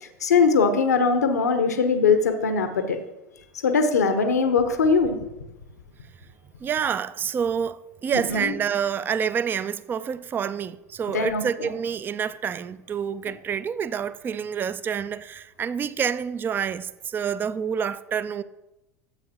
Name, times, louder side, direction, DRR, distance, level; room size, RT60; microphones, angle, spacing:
voice 1, 0.0-3.0 3.6-5.2 8.3-8.5 11.1-11.7, left 5 dB, 80° left, 0.8 m, -21 dB
voice 2, 6.6-18.4, right 7 dB, 25° right, 0.3 m, -28 dB
13.0 x 7.8 x 2.8 m
figure-of-eight pair, 75°, 9 cm